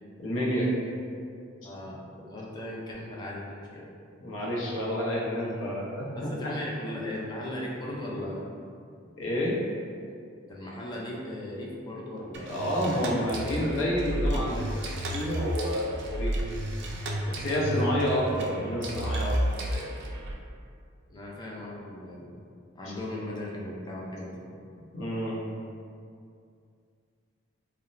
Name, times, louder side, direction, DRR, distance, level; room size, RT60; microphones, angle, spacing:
voice 1, 0.2-0.7 1.8-1.9 4.2-6.5 9.2-9.6 12.5-16.4 17.4-19.4 19.7-19.9 24.9-25.4, equal, 70° left, -5 dB, 0.6 m, -29 dB
voice 2, 1.6-2.0 2.3-3.9 6.2-8.4 10.5-13.1 21.1-22.3 22.8-24.4, left 1 dB, 20° left, -4 dB, 0.4 m, -37 dB
sound 1, 12.3-20.3, right 1 dB, 60° right, 0.3 m, -32 dB
2.9 x 2.1 x 2.5 m, 2.3 s
head